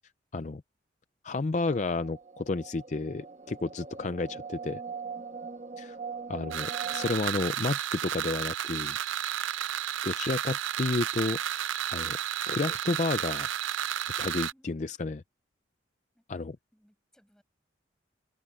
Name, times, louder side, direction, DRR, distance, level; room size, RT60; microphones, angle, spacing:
voice 1, 1.2-4.4 4.6-4.8 5.8-6.0 6.3-9.0 10.0-12.2 12.5-13.5 14.2-15.2 16.3-16.6, left 3 dB, 40° left, 0.4 m, -31 dB
sound 1, 1.6-7.1, right 5 dB, 35° right, 1.7 m, -41 dB
sound 2, 6.5-14.5, right 10 dB, 90° right, 0.6 m, -32 dB
voice 2, 14.5-15.0 16.1-16.4 16.7-17.4, equal, 5° left, 7.0 m, -64 dB
head